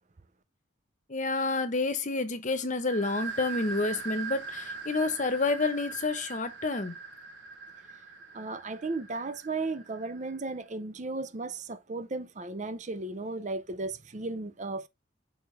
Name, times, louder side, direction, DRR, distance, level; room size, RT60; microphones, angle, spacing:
voice 1, 1.1-6.9, left 3 dB, 40° left, 1.0 m, -29 dB
sound 1, 2.9-10.4, right 4 dB, 75° right, 1.3 m, -41 dB
voice 2, 8.3-14.9, right 3 dB, 40° right, 0.6 m, -35 dB
6.6 x 4.7 x 3.3 m
head